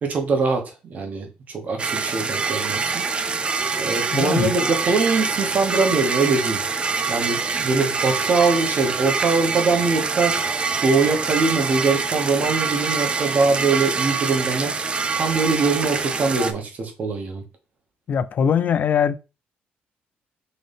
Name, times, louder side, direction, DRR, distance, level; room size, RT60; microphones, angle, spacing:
voice 1, 0.0-1.3 1.5-3.1 3.8-6.6 7.1-10.4 10.8-14.7 15.2-17.4, right 4 dB, 45° right, 1.4 m, -22 dB
sound 1, 1.8-16.5, right 4 dB, 30° right, 0.5 m, -25 dB
voice 2, 4.1-4.5 18.1-19.2, left 7 dB, 50° left, 0.4 m, -21 dB
4.0 x 3.5 x 3.5 m
cardioid pair, 110°, 4 cm